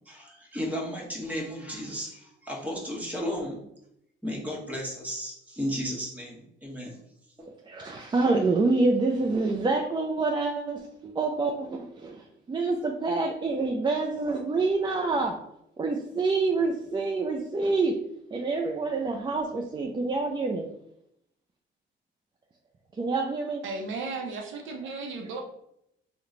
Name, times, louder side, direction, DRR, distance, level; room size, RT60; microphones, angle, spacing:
voice 1, 0.0-3.6 4.2-7.0, equal, 5° right, -3 dB, 1.1 m, -34 dB
voice 2, 7.6-15.3 15.8-17.9 18.3-20.6 23.0-23.6, right 3 dB, 25° right, 1 dB, 0.3 m, -27 dB
voice 3, 23.6-25.4, right 3 dB, 80° right, 2 dB, 0.6 m, -35 dB
3.0 x 2.1 x 3.7 m, 0.77 s
cardioid pair, 90°, 20 cm